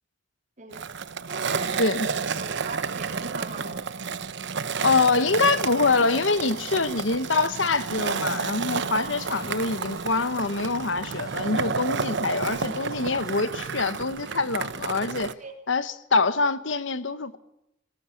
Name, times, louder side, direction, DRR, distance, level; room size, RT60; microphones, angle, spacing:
voice 1, 0.6-0.9 1.3-1.9 2.4-3.8 8.9-9.2 15.4-15.5, right 3 dB, 40° right, 3.9 m, -40 dB
Skateboard, 0.7-15.3, right 5 dB, 65° right, 0.9 m, -31 dB
voice 2, 4.8-15.3 15.7-17.4, left 3 dB, 70° left, 1.2 m, -25 dB
sound 1, 6.4-13.5, left 1 dB, 20° left, 2.8 m, -50 dB
18.5 x 18.0 x 8.4 m
head